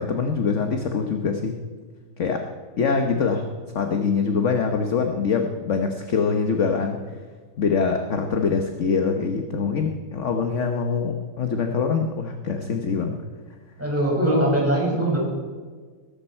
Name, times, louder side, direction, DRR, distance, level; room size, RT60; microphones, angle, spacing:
voice 1, 0.0-1.6 2.2-2.5 2.8-3.5 3.7-7.0 7.6-13.2, left 5 dB, 45° left, 5 dB, 1.0 m, -24 dB
voice 2, 13.8-15.2, right 1 dB, 5° right, -4 dB, 5.6 m, -21 dB
20.5 x 12.0 x 4.4 m, 1.5 s
omnidirectional pair, 2.4 m